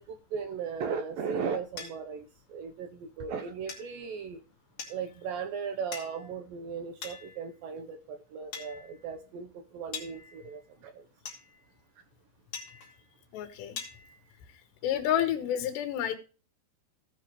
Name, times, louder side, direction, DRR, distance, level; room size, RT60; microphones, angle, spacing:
voice 1, 0.0-4.4 4.9-11.1, right 6 dB, 75° right, 2.1 m, -37 dB
sound 1, 1.8-1.9 3.7-4.1 4.8-5.2 5.9-6.3 7.0-7.6 8.5-9.1 9.9-10.7 11.2-11.8 12.5-13.1 13.8-14.3, left 6 dB, 45° left, 2.9 m, -44 dB
voice 2, 13.3-13.8 14.8-16.2, left 10 dB, 75° left, 3.4 m, -29 dB
17.5 x 6.1 x 3.1 m
omnidirectional pair, 5.1 m